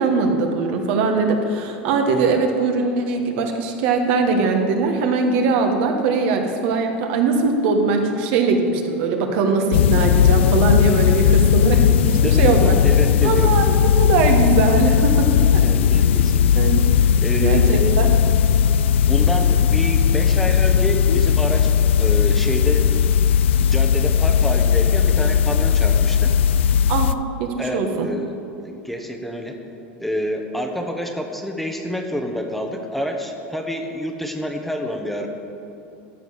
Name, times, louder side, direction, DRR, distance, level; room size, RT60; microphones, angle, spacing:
voice 1, 0.0-12.7 13.2-15.7 16.5-16.8 17.4-18.1 26.9-27.1 27.4-28.1, right 4 dB, 65° right, 4 dB, 1.3 m, -21 dB
sound 1, 9.7-27.1, left 8 dB, 85° left, 0.3 m, -17 dB
voice 2, 12.2-13.5 15.5-16.6 17.2-17.7 19.0-21.7 22.0-22.9 23.6-26.3 27.6-29.6 30.0-35.3, equal, ahead, 3 dB, 1.0 m, -28 dB
13.5 x 4.7 x 7.1 m, 2.7 s
supercardioid pair, 110°, 6 cm